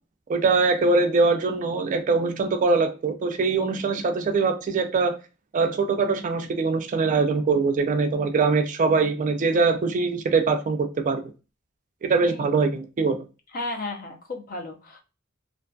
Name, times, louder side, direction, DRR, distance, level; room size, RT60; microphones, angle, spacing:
voice 1, 0.3-5.2 5.5-11.2 12.1-13.2, right 4 dB, 40° right, 6 dB, 0.3 m, -22 dB
voice 2, 13.5-15.0, left 2 dB, 45° left, 3 dB, 0.6 m, -34 dB
2.6 x 2.5 x 2.2 m, 0.30 s
head